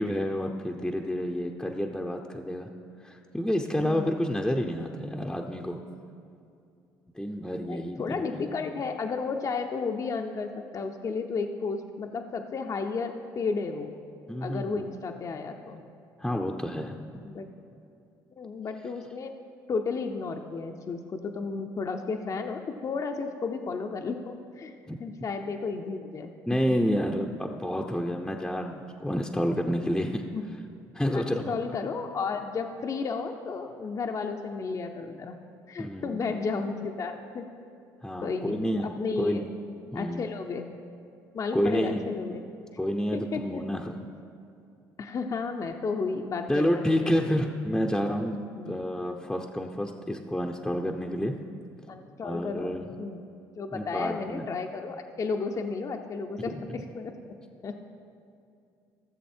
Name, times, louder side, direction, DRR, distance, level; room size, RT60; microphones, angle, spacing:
voice 1, 0.0-2.7 3.0-5.8 7.2-8.5 14.3-14.8 16.2-17.2 24.9-25.0 26.5-30.2 30.9-31.5 35.8-36.4 38.0-38.9 39.2-39.5 39.9-40.2 41.5-42.1 42.8-44.1 46.5-48.4 48.7-51.3 52.2-52.9 53.7-54.5 56.4-56.8, equal, 5° left, 2 dB, 0.6 m, -29 dB
voice 2, 3.8-4.1 7.7-13.9 14.4-15.8 17.2-17.5 18.4-19.3 19.7-26.3 26.9-27.0 30.3-30.4 31.1-35.4 35.7-37.5 38.2-39.5 39.9-40.7 41.3-42.4 43.1-43.6 45.0-46.7 47.0-47.2 48.5-48.7 51.9-52.7 53.0-53.2 53.6-57.1 57.6-57.7, left 4 dB, 40° left, 4 dB, 0.6 m, -33 dB
14.5 x 6.9 x 4.4 m, 2.5 s
supercardioid pair, 70°, 8 cm